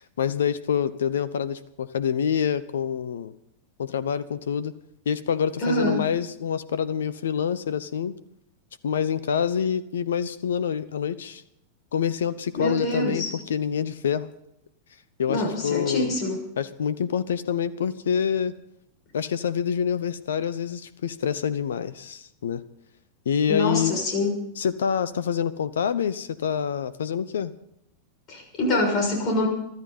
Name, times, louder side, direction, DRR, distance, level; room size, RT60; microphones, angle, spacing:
voice 1, 0.0-3.3 3.8-4.7 5.1-8.2 8.8-11.4 11.9-14.3 15.2-16.1 16.6-18.5 19.1-22.6 23.3-23.9 24.6-27.5, left 7 dB, 65° left, 18 dB, 0.8 m, -26 dB
voice 2, 5.6-5.9 12.6-13.3 15.3-16.4 23.5-24.4 28.3-29.5, left 1 dB, 35° left, 1 dB, 6.4 m, -25 dB
24.0 x 13.5 x 4.2 m, 0.77 s
figure-of-eight pair, 90°, 0 cm